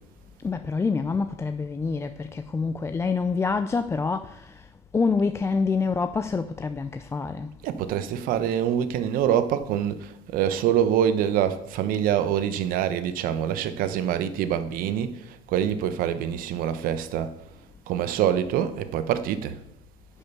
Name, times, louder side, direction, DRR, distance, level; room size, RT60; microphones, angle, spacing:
voice 1, 0.4-4.7 4.9-7.5, left 4 dB, 15° left, 0.4 m, -26 dB
voice 2, 7.6-17.3 17.9-19.6, right 9 dB, 60° right, 1.0 m, -25 dB
10.0 x 5.5 x 7.0 m
supercardioid pair, 115°, 16 cm